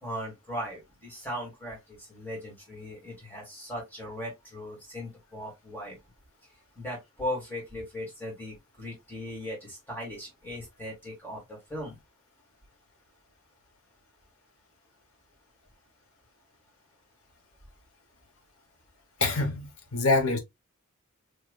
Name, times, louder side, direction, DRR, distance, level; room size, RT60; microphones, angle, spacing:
voice 1, 0.0-6.0 6.8-12.0, equal, 10° left, 2.4 m, -38 dB
voice 2, 19.2-20.4, left 3 dB, 70° left, 1.2 m, -25 dB
4.7 x 3.1 x 2.4 m
head